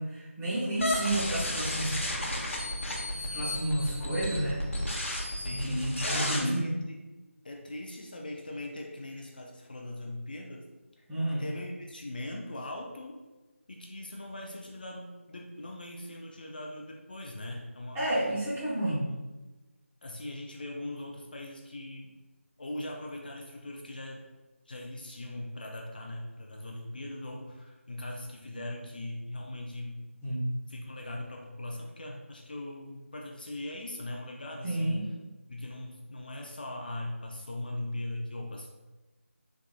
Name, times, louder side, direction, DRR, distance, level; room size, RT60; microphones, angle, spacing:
voice 1, 0.0-2.0 3.1-4.6 5.5-6.7 11.1-11.4 17.9-19.0 30.2-30.5 34.6-35.1, right 1 dB, 5° right, -12 dB, 0.6 m, -30 dB
sound 1, 0.8-6.4, left 1 dB, 65° left, 0.9 m, -33 dB
voice 2, 5.3-7.0 7.4-10.7 11.0-11.1 11.3-13.2 13.7-18.0 18.8-19.2 20.0-22.1 22.6-24.2 24.7-30.3 30.7-35.0 35.5-38.7, left 1 dB, 40° left, 0 dB, 0.4 m, -40 dB
3.8 x 3.5 x 2.4 m, 1.1 s
figure-of-eight pair, 165°, 7 cm